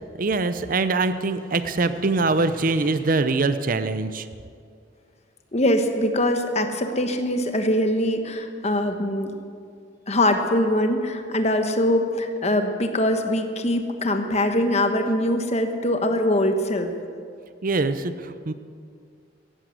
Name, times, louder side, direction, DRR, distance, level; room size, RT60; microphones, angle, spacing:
voice 1, 0.2-4.3 17.6-18.5, right 3 dB, 50° right, 11 dB, 0.7 m, -23 dB
voice 2, 5.5-9.3 10.1-16.9, left 1 dB, 35° left, 6 dB, 1.2 m, -23 dB
15.5 x 11.0 x 7.9 m, 2.2 s
head